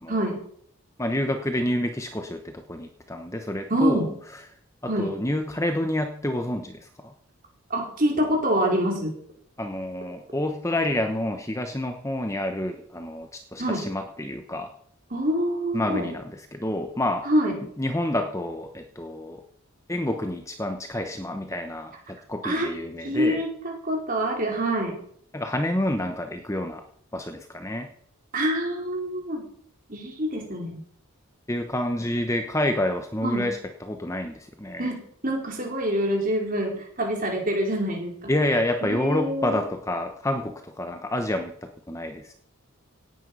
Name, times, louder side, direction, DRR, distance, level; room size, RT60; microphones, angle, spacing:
voice 1, 0.1-0.4 3.7-4.1 4.9-5.1 7.7-9.1 13.6-13.8 15.1-16.1 17.2-17.6 22.4-22.7 23.0-24.9 28.3-29.4 29.9-30.8 33.2-33.5 34.8-38.3 38.8-39.6, equal, 40° right, 0 dB, 4.5 m, -26 dB
voice 2, 1.0-4.1 4.8-7.1 9.6-14.7 15.7-17.3 17.8-19.4 19.9-23.4 25.3-26.8 27.1-27.9 31.5-34.9 38.3-42.3, left 1 dB, 15° left, 6 dB, 1.0 m, -28 dB
17.5 x 9.5 x 5.5 m, 0.62 s
head